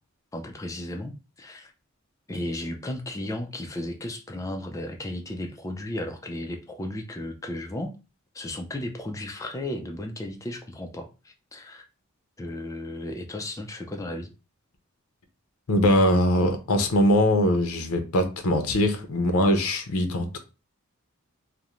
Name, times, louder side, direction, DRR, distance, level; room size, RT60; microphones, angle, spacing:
voice 1, 0.3-1.7 2.3-7.9 8.3-11.9 12.4-14.3, left 1 dB, 15° left, 0.3 m, -34 dB
voice 2, 15.7-20.4, left 1 dB, 75° left, 0.5 m, -22 dB
2.5 x 2.0 x 2.9 m
head